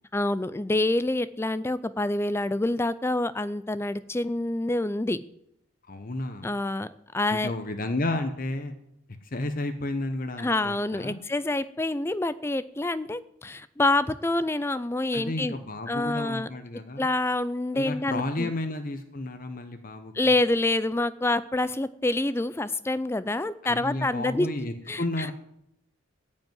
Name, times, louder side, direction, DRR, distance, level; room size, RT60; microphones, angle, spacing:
voice 1, 0.1-5.2 6.4-7.5 10.4-15.6 15.9-16.5 17.0-18.5 20.1-24.5 24.9-25.3, left 2 dB, 10° left, 15 dB, 0.4 m, -27 dB
voice 2, 5.9-6.5 7.3-8.7 9.2-11.2 15.1-17.1 17.7-20.3 23.6-25.3, left 2 dB, 40° left, 8 dB, 0.9 m, -32 dB
13.5 x 5.4 x 9.4 m, 0.77 s
head